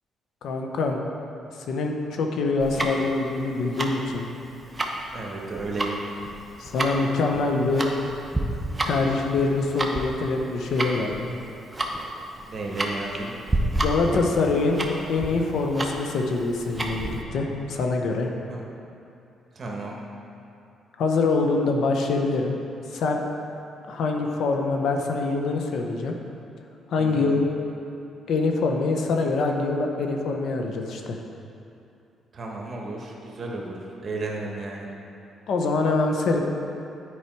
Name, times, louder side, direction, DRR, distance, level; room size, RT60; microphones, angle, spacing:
voice 1, 0.4-1.0 1.7-4.3 6.6-7.9 8.8-11.3 13.8-18.3 21.0-22.6 22.9-23.2 23.9-26.2 26.9-27.5 28.3-31.2 35.5-36.4, left 3 dB, 70° left, 2 dB, 0.8 m, -24 dB
Tick-tock, 2.6-17.2, right 1 dB, 20° right, 0.8 m, -30 dB
voice 2, 5.1-6.0 12.5-13.3 18.5-18.6 19.5-20.0 27.0-27.4 32.3-34.9, right 3 dB, 45° right, -1 dB, 1.3 m, -33 dB
8.5 x 4.8 x 4.6 m, 2.7 s
cardioid pair, 90°, 0 cm